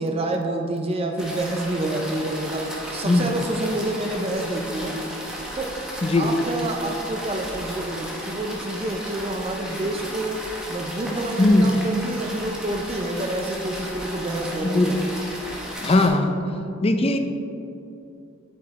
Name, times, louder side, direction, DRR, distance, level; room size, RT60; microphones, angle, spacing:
voice 1, 0.0-2.6 2.9-5.0 5.5-5.7 6.2-10.4 10.7-15.0, right 1 dB, 30° right, 3 dB, 0.5 m, -28 dB
sound 1, 1.2-16.1, equal, 5° right, 1.0 m, -35 dB
voice 2, 11.4-11.7 14.6-14.9 15.8-16.3 16.8-17.2, left 2 dB, 30° left, 6 dB, 0.5 m, -19 dB
8.2 x 5.0 x 4.1 m, 2.7 s
head